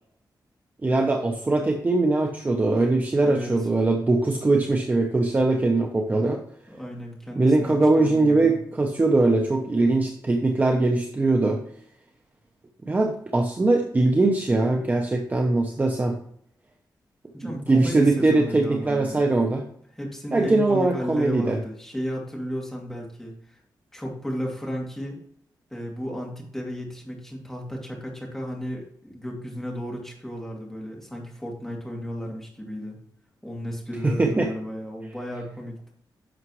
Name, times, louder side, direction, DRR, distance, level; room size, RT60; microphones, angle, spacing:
voice 1, 0.8-6.4 7.4-11.6 12.8-16.2 17.7-19.6 20.3-21.6 34.0-34.5, right 2 dB, 20° right, 2 dB, 0.9 m, -21 dB
voice 2, 3.3-3.7 6.7-8.6 17.3-19.3 19.9-23.6 23.9-25.2 25.7-33.0 33.4-35.9, equal, 5° left, -2 dB, 2.6 m, -34 dB
11.0 x 6.5 x 3.2 m, 0.67 s
wide cardioid pair, 150°, 8 cm